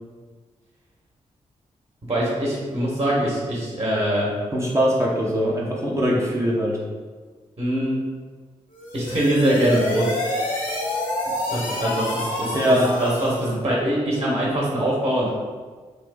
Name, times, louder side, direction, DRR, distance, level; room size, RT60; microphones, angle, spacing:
voice 1, 2.1-4.3 7.6-8.0 8.9-10.2 11.5-15.3, right 1 dB, 40° right, -6 dB, 1.3 m, -23 dB
voice 2, 4.5-6.8 12.5-12.9, equal, 20° right, -4 dB, 0.8 m, -21 dB
sound 1, 8.7-13.5, left 1 dB, 70° left, 0.8 m, -28 dB
3.2 x 2.5 x 3.5 m, 1.5 s
supercardioid pair, 40°, 14 cm